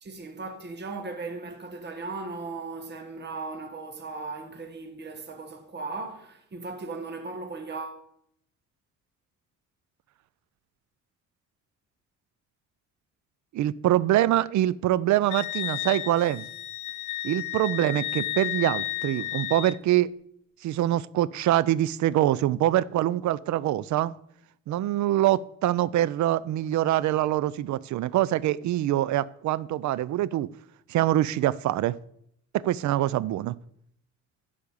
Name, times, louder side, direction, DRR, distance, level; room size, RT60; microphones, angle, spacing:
voice 1, 0.0-8.0, right 3 dB, 35° right, 1.3 m, -37 dB
voice 2, 13.5-16.5 17.2-20.1 20.6-24.1 24.7-30.5 30.9-31.9 32.6-33.5, right 13 dB, 70° right, 0.5 m, -24 dB
Wind instrument woodwind instrument, 15.3-19.8, left 14 dB, 85° left, 0.6 m, -33 dB
10.5 x 5.1 x 6.9 m
cardioid pair, 90°, 30 cm